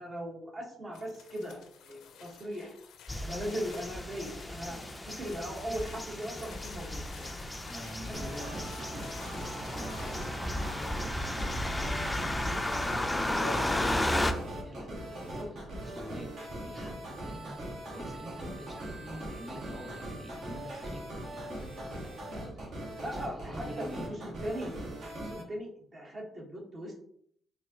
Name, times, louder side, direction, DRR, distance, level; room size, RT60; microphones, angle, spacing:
voice 1, 0.0-2.7 3.2-4.8 5.0-7.4 7.7-7.8 8.1-8.4 13.4-13.7 14.4-15.5 15.8-16.0 23.0-24.7 25.1-27.0, equal, 45° right, -3 dB, 1.2 m, -39 dB
sound 1, 0.9-10.3, left 7 dB, 80° left, 0.5 m, -53 dB
sound 2, 3.1-14.3, left 1 dB, 10° left, 0.4 m, -34 dB
voice 2, 7.4-9.1 9.8-11.0 11.4-11.7 12.6-24.1, equal, 10° right, -2 dB, 1.2 m, -47 dB
sound 3, 8.1-25.4, right 1 dB, 65° right, 1.5 m, -41 dB
4.5 x 2.6 x 2.8 m, 0.66 s
cardioid pair, 90°, 0 cm